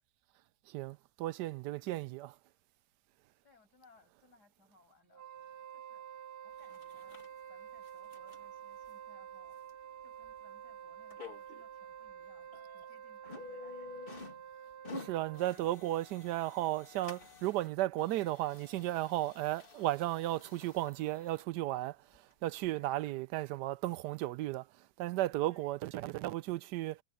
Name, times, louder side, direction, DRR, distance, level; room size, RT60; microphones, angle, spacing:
voice 1, 0.7-2.3 14.9-27.0, right 15 dB, 85° right, 1.2 m, -35 dB
voice 2, 3.4-5.3 5.7-6.0 6.4-14.0 22.7-23.0 25.5-25.8, left 3 dB, 80° left, 6.8 m, -66 dB
Wind instrument woodwind instrument, 5.1-15.7, right 9 dB, 40° right, 1.2 m, -49 dB
sound 1, 6.6-7.3 7.8-8.4 8.8-8.9 9.7-9.8 10.2-10.4 11.1-11.6 12.1-12.2 12.5-12.8 13.3-14.4 14.7-17.7 18.0-21.4 22.1-22.2 22.6-22.7, left 3 dB, 35° left, 1.8 m, -50 dB
omnidirectional pair, 1.7 m